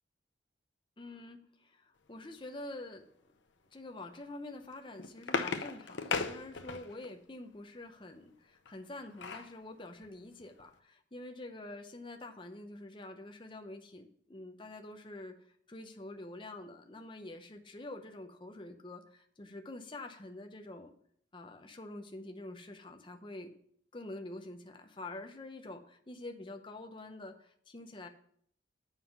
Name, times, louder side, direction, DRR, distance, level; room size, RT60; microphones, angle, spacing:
voice 1, 1.0-3.0 3.7-15.4 15.7-20.9 21.3-23.5 23.9-28.1, left 2 dB, 25° left, 5 dB, 0.7 m, -46 dB
sound 1, 4.6-7.1 8.7-9.5 10.0-10.1 10.4-10.6, left 4 dB, 75° left, 0.7 m, -37 dB
7.5 x 5.6 x 5.8 m, 0.64 s
head